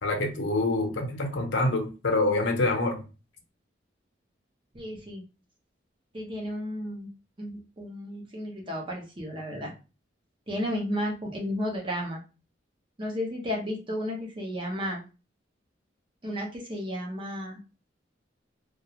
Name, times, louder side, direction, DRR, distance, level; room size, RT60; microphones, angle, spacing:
voice 1, 0.0-3.0, left 2 dB, 75° left, 3 dB, 0.6 m, -26 dB
voice 2, 4.7-5.2 6.1-7.1 7.4-9.7 10.5-12.2 13.0-15.0 16.2-17.6, equal, 25° right, -2 dB, 0.6 m, -33 dB
2.4 x 2.2 x 2.8 m, 0.32 s
head